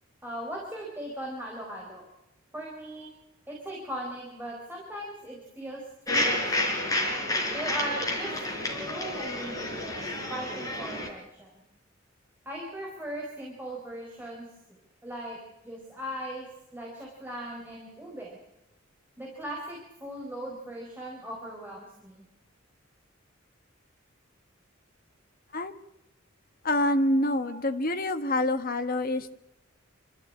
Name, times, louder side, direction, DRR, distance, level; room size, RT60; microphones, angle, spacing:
voice 1, 0.2-2.1 2.5-3.1 3.5-5.8 6.1-6.7 7.5-8.3 8.9-10.0 10.3-11.5 12.4-14.5 15.0-15.4 15.6-16.5 16.7-18.4 19.2-22.3 27.4-27.6, right 1 dB, 10° right, -2 dB, 4.4 m, -38 dB
sound 1, 6.1-11.1, left 1 dB, 15° left, 4.5 m, -30 dB
voice 2, 26.6-29.3, left 1 dB, 45° left, 8 dB, 1.4 m, -26 dB
26.5 x 14.0 x 8.6 m, 0.94 s
head